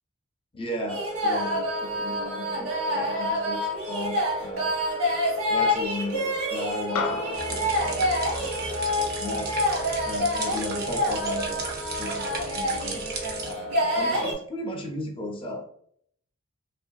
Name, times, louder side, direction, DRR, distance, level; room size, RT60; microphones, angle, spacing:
voice 1, 0.5-4.7 5.5-9.5 10.0-13.1 13.4-15.6, left 1 dB, 25° left, 2 dB, 0.5 m, -36 dB
sound 1, 0.9-14.3, equal, 70° right, 1.1 m, -27 dB
sound 2, 7.0-11.6, left 4 dB, 75° left, 0.4 m, -37 dB
sound 3, 7.3-13.5, right 4 dB, 45° right, 0.5 m, -35 dB
2.9 x 2.5 x 2.3 m, 0.64 s
head